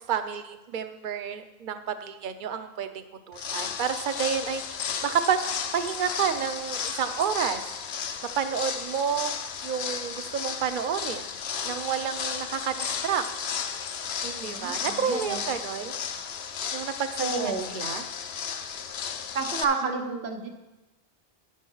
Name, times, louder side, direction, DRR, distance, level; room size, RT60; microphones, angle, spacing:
voice 1, 0.1-4.6 5.0-5.4 5.7-7.7 8.4-9.3 9.6-11.3 11.6-13.3 14.2-15.9 16.7-18.0 19.8-19.9, right 7 dB, 55° right, 9 dB, 0.8 m, -30 dB
sound 1, 3.3-19.6, left 7 dB, 80° left, 0.9 m, -34 dB
voice 2, 14.4-15.4 17.2-17.7 19.3-20.5, right 4 dB, 85° right, 3 dB, 1.4 m, -30 dB
9.7 x 6.4 x 5.4 m, 1.0 s
omnidirectional pair, 1.1 m